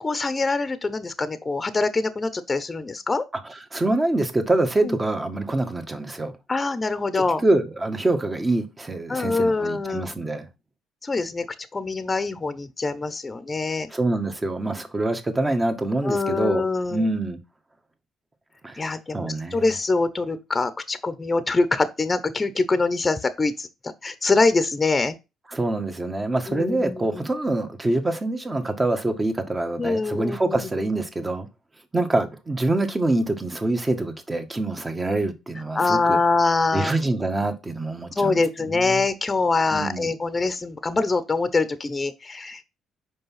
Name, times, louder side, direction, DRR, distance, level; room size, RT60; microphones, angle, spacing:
voice 1, 0.0-3.3 4.8-4.9 6.5-7.4 9.1-10.1 11.0-11.5 11.7-13.9 16.0-17.0 18.8-25.2 26.5-27.2 29.8-30.7 35.7-36.9 38.1-42.6, left 3 dB, 25° left, 0.9 m, -24 dB
voice 2, 3.5-6.3 7.1-10.5 13.9-16.6 16.9-17.4 18.6-19.7 25.5-31.5 31.9-36.2 36.7-39.0 39.7-40.1, right 2 dB, 25° right, 1.7 m, -25 dB
5.3 x 4.7 x 5.8 m
supercardioid pair, 65°, 0 cm